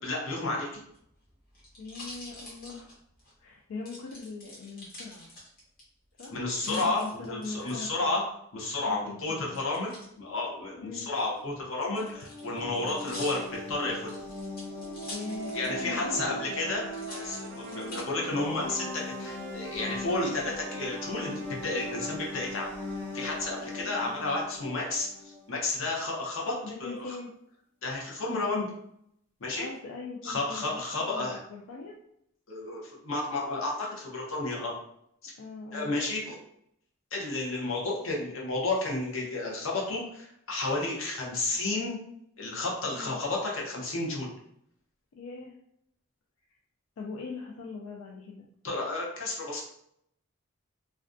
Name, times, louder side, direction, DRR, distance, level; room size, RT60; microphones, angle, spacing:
voice 1, 0.0-0.8 6.3-8.2 8.5-14.1 15.5-22.7 23.1-27.1 27.8-28.7 29.4-29.7 30.2-31.4 32.5-34.8 35.2-35.3 35.7-36.4 37.1-42.0 42.4-44.3 48.6-49.6, left 2 dB, 70° left, -2 dB, 0.7 m, -32 dB
sound 1, 0.8-3.3 3.9-5.8 6.2-7.7 9.5-10.1 11.0-15.9 16.2-16.3 16.9-18.0 18.7-19.2, left 1 dB, 45° left, 1.0 m, -46 dB
voice 2, 1.8-2.9 3.4-5.3 6.2-6.4 6.7-8.1 8.9-9.6 10.8-11.1 15.1-16.5 17.7-18.0 23.8-24.2 26.6-27.3 29.6-32.0 35.4-35.9 42.9-43.2 45.1-45.5 47.0-48.5, left 4 dB, 90° left, -1 dB, 0.3 m, -41 dB
sound 2, 12.0-25.6, left 1 dB, 10° left, 0.5 m, -39 dB
Trumpet, 16.6-23.8, right 3 dB, 60° right, 0.4 m, -49 dB
2.4 x 2.2 x 2.5 m, 0.73 s
head